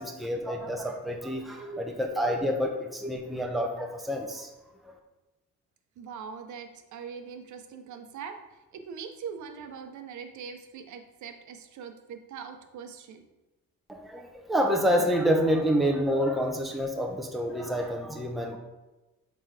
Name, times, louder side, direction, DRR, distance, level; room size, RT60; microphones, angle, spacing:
voice 1, 0.0-4.5 13.9-18.6, equal, ahead, 1 dB, 0.9 m, -28 dB
voice 2, 6.0-8.4 8.7-13.2, right 6 dB, 70° right, 7 dB, 0.9 m, -42 dB
8.3 x 4.0 x 3.4 m, 1.1 s
cardioid pair, 90°, 30 cm